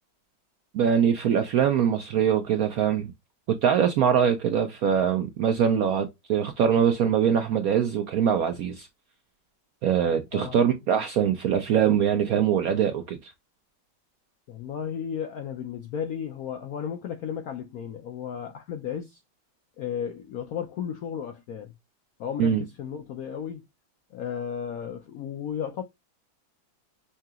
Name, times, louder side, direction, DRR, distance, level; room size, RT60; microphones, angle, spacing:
voice 1, 0.7-3.1 3.6-8.9 9.8-13.3 22.4-22.6, right 8 dB, 75° right, 0.8 m, -23 dB
voice 2, 10.3-10.8 14.5-19.2 19.8-21.7 22.2-23.6 24.1-25.8, left 8 dB, 80° left, 0.8 m, -34 dB
5.7 x 2.8 x 2.3 m
omnidirectional pair, 2.1 m